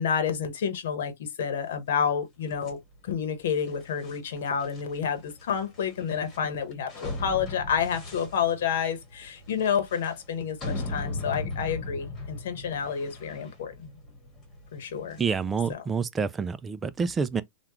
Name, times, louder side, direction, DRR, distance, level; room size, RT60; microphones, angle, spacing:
voice 1, 0.0-14.0 14.7-15.2 15.7-15.8, left 7 dB, 70° left, 0.9 m, -29 dB
sound 1, 2.5-15.7, left 2 dB, 20° left, 1.5 m, -39 dB
voice 2, 15.2-17.4, right 5 dB, 15° right, 0.3 m, -28 dB
3.5 x 2.3 x 2.9 m
hypercardioid pair, 140°, 0 cm